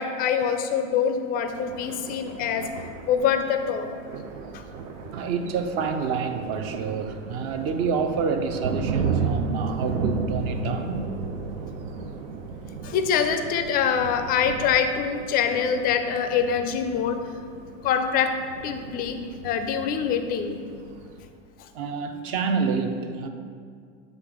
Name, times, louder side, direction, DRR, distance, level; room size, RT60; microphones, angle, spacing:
voice 1, 0.0-2.7 3.1-3.9 4.5-4.6 12.8-17.2 17.8-18.3 18.6-19.2 19.4-20.6, left 7 dB, 25° left, 7 dB, 0.4 m, -24 dB
Thunder, 1.5-21.2, right 5 dB, 85° right, 0.7 m, -34 dB
voice 2, 5.1-11.2 21.7-23.3, right 5 dB, 40° right, 7 dB, 0.5 m, -28 dB
7.9 x 2.9 x 5.0 m, 2.2 s
supercardioid pair, 120°, 38 cm